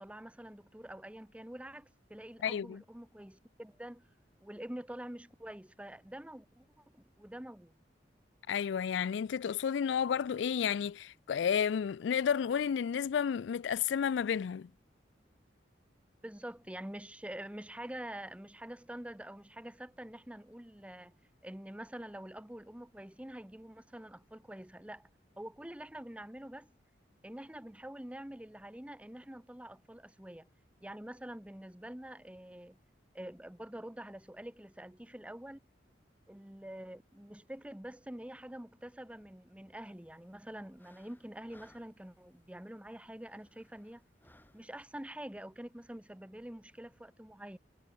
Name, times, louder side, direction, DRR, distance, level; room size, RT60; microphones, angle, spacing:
voice 1, 0.0-4.1 4.4-7.8 16.2-21.2 21.4-25.1 25.4-26.7 27.2-30.5 30.8-32.8 33.1-35.6 36.3-44.0 44.5-47.6, right 1 dB, 5° right, 0.8 m, -46 dB
voice 2, 2.4-2.8 8.5-14.7, left 7 dB, 80° left, 0.4 m, -31 dB
sound 1, 39.8-45.0, left 1 dB, 10° left, 7.1 m, -67 dB
head